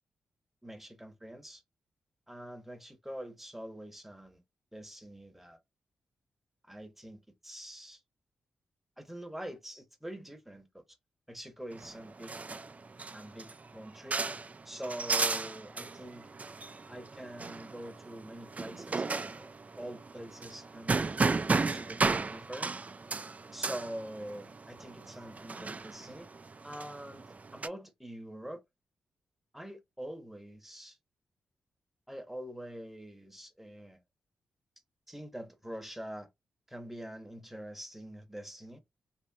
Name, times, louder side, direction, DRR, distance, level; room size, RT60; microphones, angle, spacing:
voice 1, 0.6-1.6 2.3-4.4 4.7-5.6 6.6-8.0 9.0-10.8 11.3-12.4 13.1-14.2 14.6-16.3 16.9-19.5 19.8-22.8 23.5-26.3 26.6-27.2 27.5-28.6 29.5-31.0 32.1-34.0 35.1-36.3 36.7-38.8, right 1 dB, 5° right, 0.9 m, -45 dB
sound 1, 11.7-27.7, right 4 dB, 35° right, 0.4 m, -35 dB
3.0 x 2.7 x 2.3 m
supercardioid pair, 40°, 4 cm